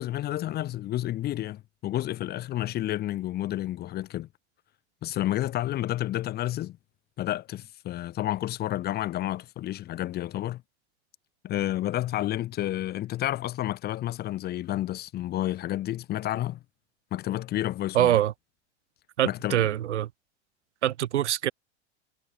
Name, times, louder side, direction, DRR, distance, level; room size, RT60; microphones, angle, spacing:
voice 1, 0.0-4.3 5.0-6.8 7.2-10.6 11.4-16.6 17.1-18.2 19.3-19.6, left 14 dB, 30° left, 0.5 m, -30 dB
voice 2, 17.9-18.3 19.2-20.1 20.8-21.5, right 12 dB, 90° right, 0.5 m, -24 dB
hypercardioid pair, 85°, 34 cm